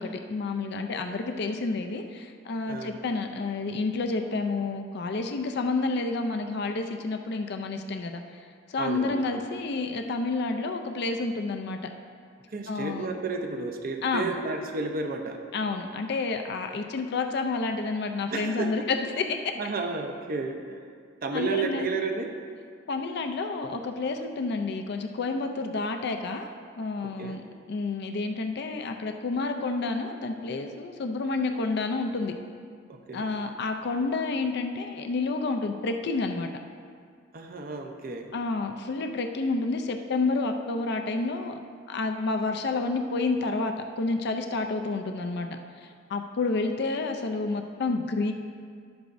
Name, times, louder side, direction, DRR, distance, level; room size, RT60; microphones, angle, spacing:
voice 1, 0.0-8.2 8.7-11.8 12.7-13.1 14.0-14.3 15.5-19.2 21.3-21.9 22.9-26.5 26.8-32.3 33.1-36.5 38.3-41.6 41.9-45.6 46.1-48.3, left 3 dB, 60° left, 5 dB, 0.5 m, -29 dB
voice 2, 2.7-3.0 8.8-9.2 12.5-15.4 18.3-18.9 19.6-20.8 21.2-22.4 27.0-27.4 32.9-33.3 37.3-38.3, right 3 dB, 50° right, 4 dB, 0.7 m, -32 dB
11.0 x 8.0 x 2.6 m, 2.1 s
head